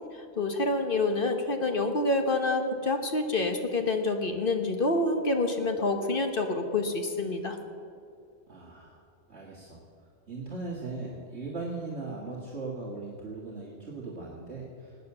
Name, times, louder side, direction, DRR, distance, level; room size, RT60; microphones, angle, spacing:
voice 1, 0.4-7.6, left 2 dB, 45° left, 5 dB, 1.5 m, -27 dB
voice 2, 8.5-9.0 9.3-9.8 10.3-15.1, right 3 dB, 60° right, -4 dB, 2.3 m, -38 dB
18.0 x 9.4 x 6.9 m, 2.5 s
omnidirectional pair, 1.3 m